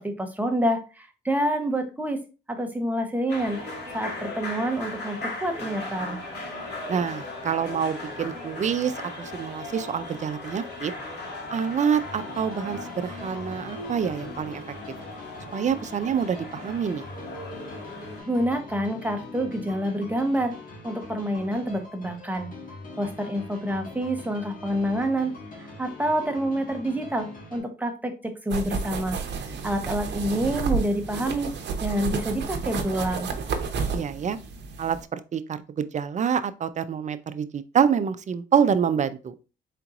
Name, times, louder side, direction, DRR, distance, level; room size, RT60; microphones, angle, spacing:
voice 1, 0.0-2.2 2.5-3.6 3.9-6.2 18.3-20.5 20.8-22.5 23.0-29.2 29.4-31.5 31.8-33.3, right 1 dB, 10° right, 0.9 m, -27 dB
sound 1, 3.3-18.2, left 2 dB, 60° left, 2.1 m, -37 dB
voice 2, 6.9-10.9 11.5-14.6 15.5-17.0 29.5-29.7 33.9-34.4 34.8-39.3, right 7 dB, 35° right, 0.5 m, -26 dB
sound 2, 11.9-27.6, left 3 dB, 45° left, 1.7 m, -42 dB
sound 3, 28.5-35.0, right 5 dB, 60° right, 0.8 m, -31 dB
4.4 x 3.9 x 2.5 m
cardioid pair, 90°, 20 cm